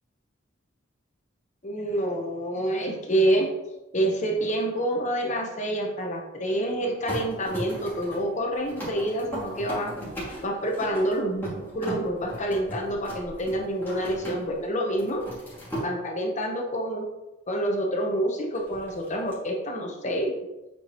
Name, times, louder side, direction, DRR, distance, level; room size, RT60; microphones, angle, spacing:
voice 1, 1.6-3.5 3.9-9.9 10.4-15.2 15.8-17.1 17.5-20.4, right 1 dB, 35° left, 1 dB, 1.0 m, -27 dB
sound 1, 7.1-14.6 14.9-15.9 18.5-19.3, right 1 dB, 10° left, 2.3 m, -37 dB
8.0 x 5.0 x 3.0 m, 1.0 s
head